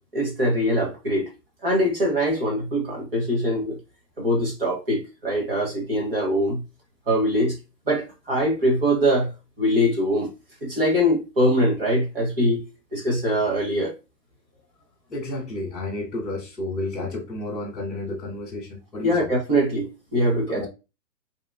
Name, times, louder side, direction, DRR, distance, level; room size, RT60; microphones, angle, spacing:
voice 1, 0.1-1.3 1.6-3.8 4.2-6.6 7.1-7.6 7.9-9.3 9.6-10.3 10.6-12.6 12.9-13.9 19.0-20.7, equal, 35° right, 0.8 m, -22 dB
voice 2, 15.1-19.3 20.5-20.7, left 2 dB, ahead, 0.4 m, -31 dB
3.1 x 2.8 x 2.3 m
hypercardioid pair, 170°, 50 cm